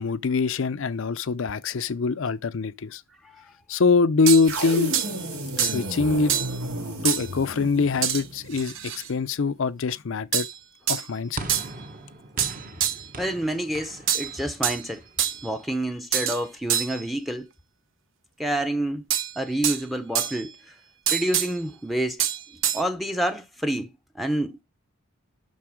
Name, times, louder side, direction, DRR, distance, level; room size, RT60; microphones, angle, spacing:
voice 1, 0.0-3.0 3.7-5.2 5.6-6.3 7.0-10.5 10.9-11.5, left 4 dB, 60° left, 0.5 m, -24 dB
sound 1, 4.3-4.5 4.9-5.1 5.6-5.8 6.3-6.6 7.0-7.3 8.0-8.2 8.5-9.1 10.3-10.6 10.9-11.0 11.5-11.7 12.4-13.1 14.1-14.8 15.2-15.5 16.1-16.4 16.7-17.0 19.1-19.8 20.1-20.5 21.1-21.5 22.2-22.8, right 9 dB, 60° right, 0.8 m, -26 dB
sound 2, 4.4-8.7, right 1 dB, 80° right, 2.3 m, -32 dB
sound 3, 11.4-15.8, right 2 dB, 40° right, 1.1 m, -40 dB
voice 2, 13.2-15.0 15.4-17.5 18.4-19.1 19.4-20.7 21.1-22.3 22.7-24.6, right 1 dB, ahead, 0.7 m, -28 dB
12.0 x 4.0 x 5.0 m
head